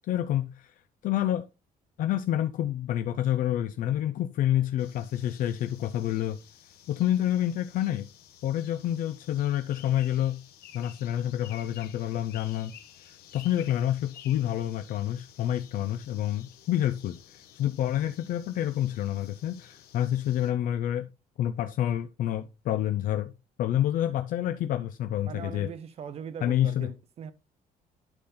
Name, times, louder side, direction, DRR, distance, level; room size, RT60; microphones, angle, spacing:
voice 1, 0.1-0.7 1.0-1.5 2.0-6.4 6.9-8.1 8.4-10.4 10.7-12.7 13.0-21.1 21.4-23.3 23.6-25.7 26.4-26.9, left 12 dB, 60° left, 0.6 m, -28 dB
sound 1, 4.8-20.5, left 10 dB, 85° left, 1.5 m, -52 dB
voice 2, 25.2-27.3, right 7 dB, 40° right, 0.8 m, -40 dB
11.5 x 3.9 x 4.2 m
cardioid pair, 170°, 16 cm